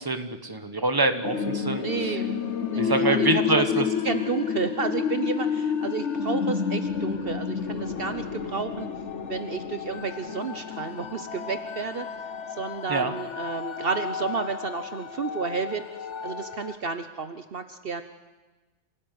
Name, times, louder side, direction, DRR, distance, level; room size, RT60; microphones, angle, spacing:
voice 1, 0.0-2.2 2.7-3.9 12.9-13.1, right 3 dB, 20° right, 8 dB, 1.5 m, -26 dB
sound 1, 1.2-16.8, left 7 dB, 90° left, 1.5 m, -30 dB
voice 2, 1.8-2.3 2.7-8.9 9.3-12.1 12.6-15.9 16.2-18.0, right 5 dB, 55° right, 9 dB, 1.1 m, -31 dB
27.0 x 18.0 x 9.6 m, 1.2 s
omnidirectional pair, 1.2 m